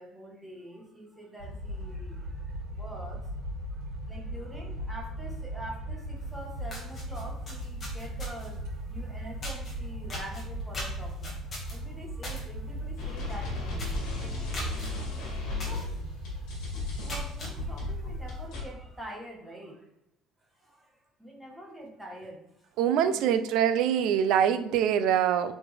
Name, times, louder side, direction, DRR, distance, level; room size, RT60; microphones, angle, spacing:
voice 1, 0.0-3.2 3.7-14.6 15.2-19.9 20.4-23.5 24.7-25.2, right 1 dB, 5° right, -2 dB, 1.4 m, -46 dB
sound 1, 1.4-17.9, right 1 dB, 90° right, 2.8 m, -38 dB
sound 2, 6.2-6.3 6.6-8.6 9.4-9.7 10.1-12.4 12.8-13.0 13.3-13.4 13.7-14.1 14.5-14.9 15.6-15.9 16.3-16.4 16.9-17.5, left 1 dB, 20° left, 1.9 m, -39 dB
sound 3, 13.0-18.6, left 3 dB, 60° left, 2.6 m, -35 dB
voice 2, 22.8-25.5, right 9 dB, 55° right, 10 dB, 0.5 m, -24 dB
8.5 x 4.3 x 3.4 m, 0.83 s
cardioid pair, 180°, 0 cm